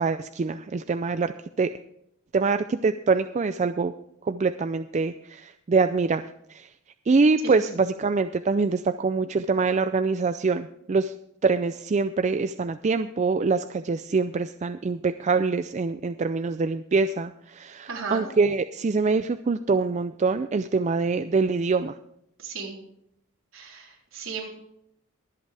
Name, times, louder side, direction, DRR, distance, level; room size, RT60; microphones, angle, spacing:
voice 1, 0.0-1.3 1.6-1.7 2.3-3.9 4.2-6.2 6.5-6.7 7.1-11.1 11.4-21.9, right 4 dB, 30° right, 10 dB, 0.3 m, -24 dB
voice 2, 17.9-18.2 22.4-22.8 23.5-24.5, right 5 dB, 65° right, -2 dB, 3.9 m, -35 dB
23.0 x 8.2 x 3.4 m, 0.74 s
head